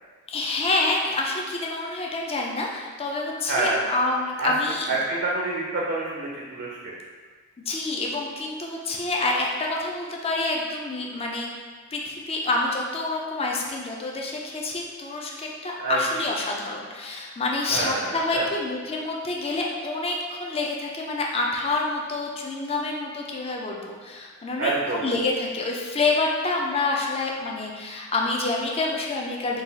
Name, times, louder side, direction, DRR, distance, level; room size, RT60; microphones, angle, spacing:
voice 1, 0.3-4.9 7.7-11.5 11.9-29.6, left 2 dB, 30° left, -1 dB, 0.5 m, -27 dB
voice 2, 3.5-3.8 4.4-4.5 4.9-6.9 15.8-16.0 17.7-18.5 24.6-25.1, right 3 dB, 55° right, -4 dB, 0.6 m, -27 dB
3.9 x 2.4 x 3.9 m, 1.5 s
head